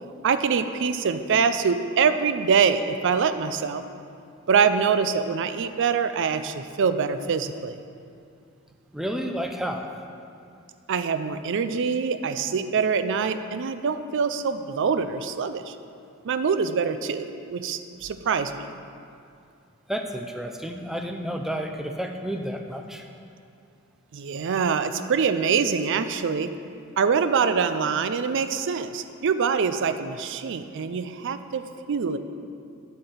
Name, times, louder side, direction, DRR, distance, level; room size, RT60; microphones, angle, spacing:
voice 1, 0.2-3.8 4.5-7.8 10.9-15.7 16.2-18.7 24.1-26.5 27.0-31.6 31.9-32.2, right 6 dB, 60° right, 11 dB, 0.4 m, -24 dB
voice 2, 8.9-9.9 19.9-23.1, equal, ahead, 4 dB, 0.5 m, -31 dB
9.4 x 4.4 x 6.7 m, 2.5 s
head